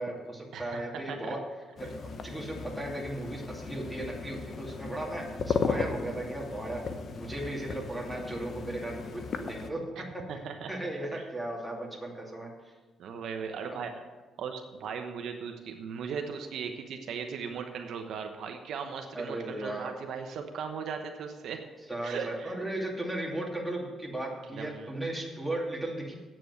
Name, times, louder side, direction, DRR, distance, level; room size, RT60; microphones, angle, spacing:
voice 1, 0.0-1.4 1.8-6.8 7.1-9.8 10.7-12.7 13.5-13.8 19.1-19.9 21.9-26.1, right 1 dB, 5° right, -2 dB, 2.6 m, -36 dB
voice 2, 0.5-1.3 10.3-10.7 11.1-11.2 13.0-14.0 14.4-21.6 22.0-22.6 24.5-24.9, right 6 dB, 70° right, 5 dB, 0.9 m, -38 dB
sound 1, 1.8-9.7, left 5 dB, 55° left, 0.9 m, -36 dB
8.6 x 7.6 x 7.8 m, 1.3 s
cardioid pair, 90°, 0 cm